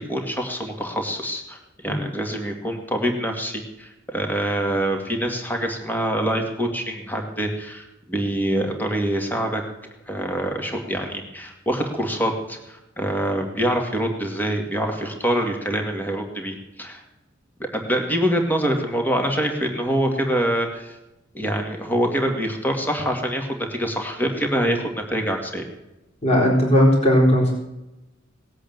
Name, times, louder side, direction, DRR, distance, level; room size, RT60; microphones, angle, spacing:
voice 1, 0.0-9.6 10.1-17.0 17.6-21.0 21.3-25.7, right 1 dB, 10° left, 3 dB, 2.3 m, -25 dB
voice 2, 26.2-27.5, equal, 35° left, -2 dB, 4.2 m, -17 dB
19.0 x 8.5 x 8.0 m, 0.95 s
head